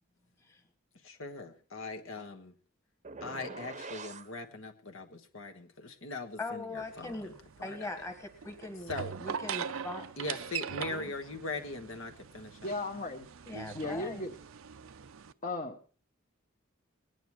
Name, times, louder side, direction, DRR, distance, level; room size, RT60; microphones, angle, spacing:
voice 1, 1.0-2.5 3.2-7.3 7.6-7.9 8.9-9.1 10.2-12.8, left 3 dB, 70° left, 4 dB, 1.3 m, -41 dB
sound 1, 3.0-4.3, right 4 dB, 35° right, 0.8 m, -44 dB
voice 2, 6.4-7.3 7.6-8.9 9.2-10.1 13.4-14.2, left 2 dB, 15° left, 6 dB, 1.5 m, -40 dB
sound 2, 6.8-15.3, right 7 dB, 75° right, 0.6 m, -42 dB
voice 3, 12.6-13.3 13.7-14.3 15.4-15.8, left 2 dB, 40° left, 2 dB, 1.0 m, -36 dB
20.0 x 9.2 x 4.5 m, 0.39 s
head